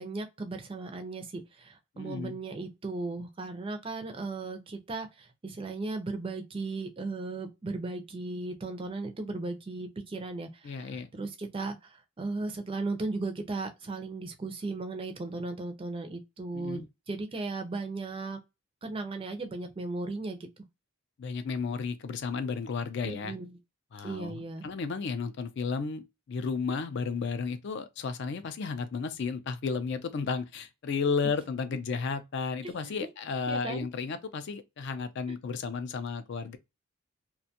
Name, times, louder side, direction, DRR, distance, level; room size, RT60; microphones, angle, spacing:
voice 1, 0.0-18.4 18.8-20.5 23.0-23.6 24.0-24.7 32.6-33.1 33.5-33.9, right 3 dB, 25° right, 0.4 m, -36 dB
voice 2, 2.0-2.4 10.6-11.1 16.5-16.9 21.2-23.4 23.9-36.6, left 5 dB, 50° left, 0.3 m, -33 dB
2.5 x 2.2 x 2.7 m
head